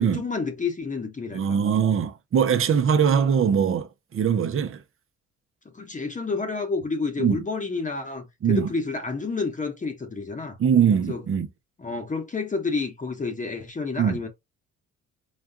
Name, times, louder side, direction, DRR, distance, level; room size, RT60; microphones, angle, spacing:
voice 1, 0.0-1.6 5.7-10.6 11.1-11.2 11.8-14.3, left 4 dB, 25° left, 1.0 m, -30 dB
voice 2, 1.3-4.8 7.2-7.4 8.4-8.7 10.6-11.5 14.0-14.2, right 7 dB, 45° right, 0.8 m, -22 dB
4.2 x 2.3 x 3.6 m
cardioid pair, 90°, 30 cm